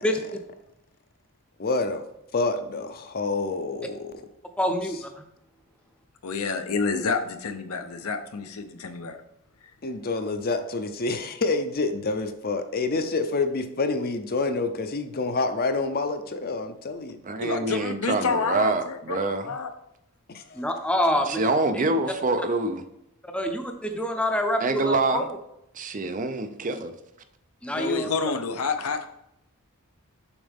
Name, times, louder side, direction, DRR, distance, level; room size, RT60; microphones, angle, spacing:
voice 1, 1.6-2.0 2.3-4.2 9.8-17.2 20.3-20.6, left 3 dB, 45° left, 8 dB, 0.6 m, -27 dB
voice 2, 4.6-5.2 20.5-21.4 21.7-21.8 23.2-25.3 27.6-28.1, equal, 5° left, 5 dB, 0.6 m, -26 dB
voice 3, 6.2-9.2 17.4-19.7 27.7-29.1, left 4 dB, 80° left, 7 dB, 0.7 m, -29 dB
voice 4, 17.2-19.5 21.3-22.8 24.6-25.3 25.7-26.9, right 3 dB, 35° right, 9 dB, 0.5 m, -26 dB
7.1 x 5.3 x 3.5 m, 0.82 s
head